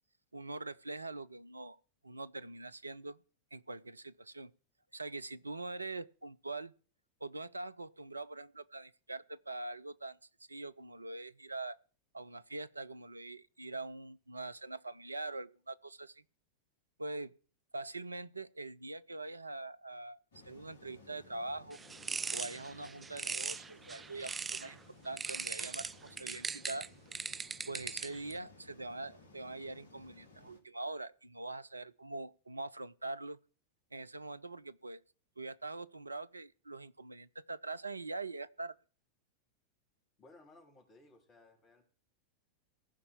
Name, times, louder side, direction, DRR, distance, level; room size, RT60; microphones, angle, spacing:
voice 1, 0.3-1.8 2.0-3.2 3.5-4.5 4.9-6.7 7.2-10.2 10.5-11.8 12.1-16.2 17.0-17.4 17.7-20.2 20.4-21.8 22.3-24.8 25.0-26.9 27.7-33.4 33.9-35.0 35.4-38.8, right 2 dB, 80° right, 0.5 m, -43 dB
sound 1, 20.3-30.6, left 3 dB, 70° left, 2.4 m, -59 dB
sound 2, 21.7-24.7 25.2-28.3, right 5 dB, 15° right, 0.5 m, -40 dB
voice 2, 40.2-41.8, left 2 dB, 30° left, 4.1 m, -60 dB
15.0 x 5.5 x 8.3 m
figure-of-eight pair, 90°, 0 cm